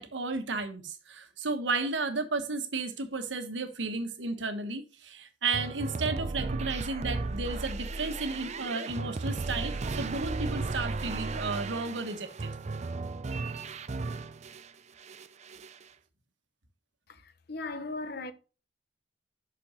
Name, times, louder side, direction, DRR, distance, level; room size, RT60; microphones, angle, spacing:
voice 1, 0.0-12.5, right 3 dB, 80° right, 1.2 m, -33 dB
sound 1, 5.5-14.7 15.0-15.8, right 3 dB, 40° right, 0.5 m, -35 dB
voice 2, 17.1-18.3, left 3 dB, 60° left, 0.9 m, -38 dB
6.2 x 5.8 x 5.6 m
head